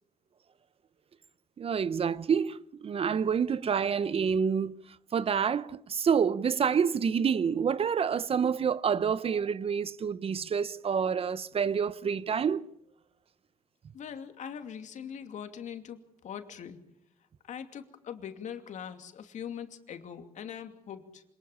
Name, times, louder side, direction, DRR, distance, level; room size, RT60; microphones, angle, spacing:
voice 1, 1.6-4.8 5.1-12.7, right 7 dB, 45° right, 0.8 m, -28 dB
voice 2, 13.9-16.8 17.4-21.2, left 8 dB, 65° left, 2.7 m, -42 dB
26.0 x 19.5 x 7.3 m
cardioid pair, 75°, 13 cm